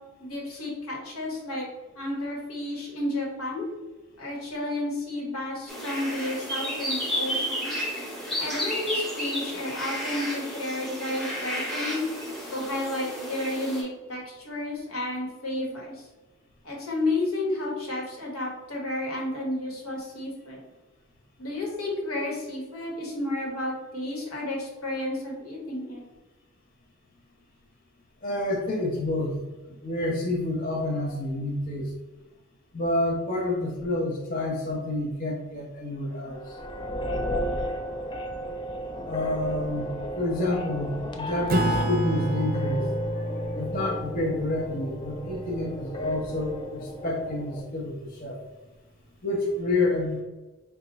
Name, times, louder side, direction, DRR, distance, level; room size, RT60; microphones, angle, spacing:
voice 1, 0.2-1.7 1.9-3.7 4.2-7.7 8.4-12.1 12.5-16.0 16.6-20.6 21.4-26.0, left 1 dB, 90° left, -2 dB, 1.3 m, -31 dB
sound 1, 5.7-13.8, equal, ahead, 0.8 m, -32 dB
voice 2, 28.2-31.9 32.7-36.5 39.1-48.4 49.2-50.2, left 2 dB, 40° left, -3 dB, 0.7 m, -29 dB
sound 2, 36.3-47.6, equal, 20° left, 0.3 m, -34 dB
Acoustic guitar / Strum, 41.5-46.5, right 2 dB, 45° right, 0.4 m, -30 dB
4.2 x 2.3 x 3.9 m, 1.2 s
head